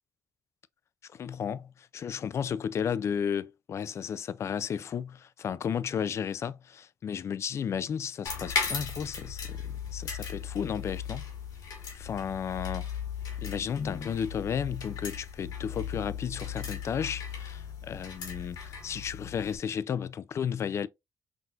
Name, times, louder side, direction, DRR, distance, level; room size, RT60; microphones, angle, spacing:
voice 1, 1.1-11.2 11.9-12.9 13.4-20.9, left 7 dB, 45° left, 0.3 m, -33 dB
sound 1, 8.2-19.6, left 6 dB, 80° left, 1.9 m, -37 dB
6.0 x 2.4 x 2.6 m
cardioid pair, 100°, 7 cm